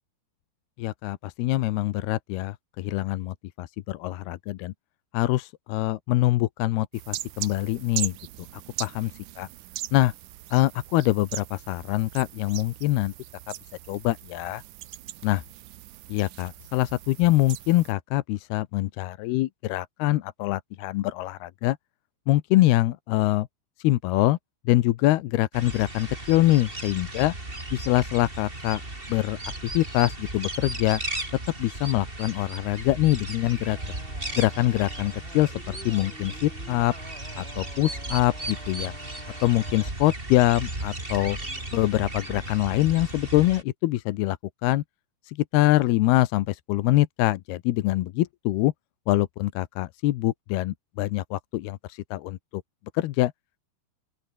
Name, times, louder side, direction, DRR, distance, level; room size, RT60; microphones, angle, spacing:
voice 1, 0.8-4.7 5.1-8.1 8.5-9.1 9.4-9.5 9.9-10.1 10.5-13.1 13.5-13.6 13.9-14.6 15.2-15.4 16.1-21.8 22.3-23.5 23.8-24.4 24.7-27.3 27.7-28.8 29.1-31.0 31.6-33.8 34.3-36.9 37.4-38.9 39.4-41.4 41.7-44.4 44.6-44.8 45.3-48.7 49.1-52.6 52.9-53.3, left 17 dB, 85° left, 2.9 m, -24 dB
sound 1, 6.9-17.9, right 15 dB, 70° right, 2.0 m, -39 dB
sound 2, 25.5-43.6, right 2 dB, 15° right, 4.3 m, -36 dB
adzan-forest, 33.7-39.9 41.4-43.1, equal, 5° left, 0.6 m, -49 dB
open air
omnidirectional pair, 4.6 m